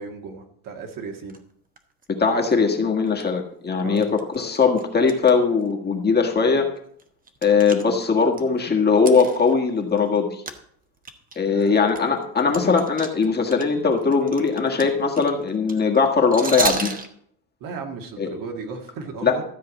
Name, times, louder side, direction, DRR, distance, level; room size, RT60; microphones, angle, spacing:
voice 1, 0.0-1.4 3.8-4.1 11.4-11.8 17.6-19.4, right 4 dB, 55° right, 3 dB, 1.9 m, -35 dB
sound 1, 1.3-1.4 1.8-2.0 2.5-2.6 3.1-3.2 4.0-5.3 5.6-5.7 6.3-6.4 6.8-8.4 9.0-10.2 10.5-10.6 11.0-13.6 13.9-17.1, right 4 dB, 20° right, 1.1 m, -32 dB
voice 2, 2.2-4.1 4.3-6.7 7.4-10.4 11.3-16.9 18.2-18.3 19.2-19.3, left 5 dB, 25° left, 1 dB, 1.7 m, -20 dB
13.5 x 4.7 x 8.2 m, 0.66 s
cardioid pair, 135°, 38 cm